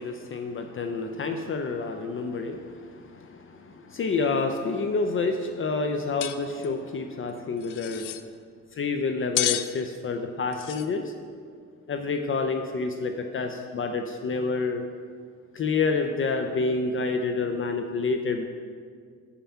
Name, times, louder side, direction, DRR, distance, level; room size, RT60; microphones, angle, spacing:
voice 1, 0.0-8.1 8.7-11.1 11.9-14.8 15.5-18.5, left 4 dB, 45° left, 5 dB, 0.6 m, -28 dB
sound 1, 6.2-6.4 6.6-6.7 7.6-8.2 9.4-9.7 10.5-10.9, left 13 dB, 85° left, 0.5 m, -29 dB
8.3 x 5.6 x 5.7 m, 2.1 s
cardioid pair, 90°, 30 cm